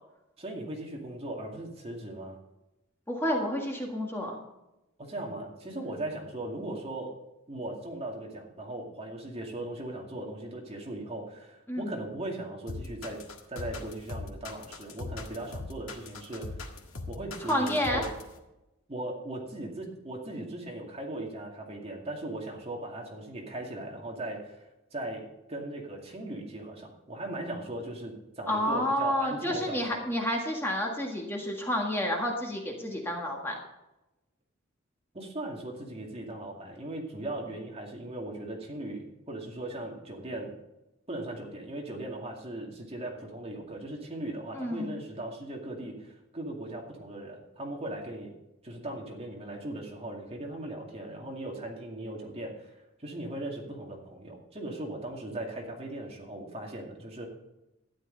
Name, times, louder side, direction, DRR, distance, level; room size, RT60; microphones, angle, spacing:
voice 1, 0.4-2.4 5.0-7.1 7.5-13.2 13.5-16.6 17.1-18.1 18.9-24.6 24.9-30.1 35.1-40.5 41.1-48.3 48.6-52.7 53.0-57.3, right 1 dB, 30° right, 0 dB, 2.3 m, -38 dB
voice 2, 3.1-4.4 11.7-11.9 17.5-18.0 28.5-33.6 44.5-44.9, equal, 10° left, 0 dB, 1.7 m, -30 dB
sound 1, 12.7-18.3, left 3 dB, 75° left, 1.8 m, -39 dB
12.5 x 10.5 x 3.9 m, 0.95 s
head